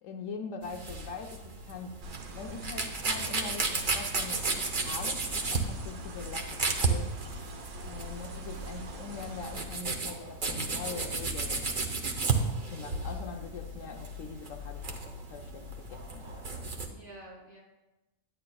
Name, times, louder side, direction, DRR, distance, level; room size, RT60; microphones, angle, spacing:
voice 1, 0.0-4.5 4.8-7.2 7.8-11.7 12.6-16.7, left 4 dB, 65° left, 4 dB, 0.9 m, -43 dB
sound 1, 0.6-16.9, right 3 dB, 40° right, 0.8 m, -34 dB
sound 2, 2.0-9.6, right 1 dB, 85° right, 1.4 m, -44 dB
voice 2, 12.4-12.9 16.9-17.6, right 1 dB, 65° right, -5 dB, 3.3 m, -50 dB
11.0 x 9.4 x 2.3 m, 1.0 s
omnidirectional pair, 1.6 m